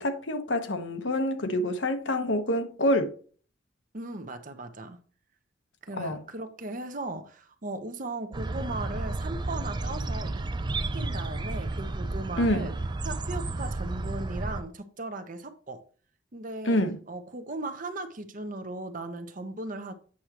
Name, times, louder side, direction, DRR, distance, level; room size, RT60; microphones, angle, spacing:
voice 1, 0.0-3.1 6.0-6.2 12.4-12.7 16.7-17.0, left 1 dB, 75° left, 1.1 m, -27 dB
voice 2, 3.9-5.0 5.8-10.4 10.9-12.7 13.0-15.8 16.3-16.8 17.1-19.9, right 2 dB, 45° right, 0.9 m, -37 dB
sound 1, 8.3-14.6, right 2 dB, 25° right, 0.4 m, -32 dB
8.5 x 6.2 x 3.0 m
head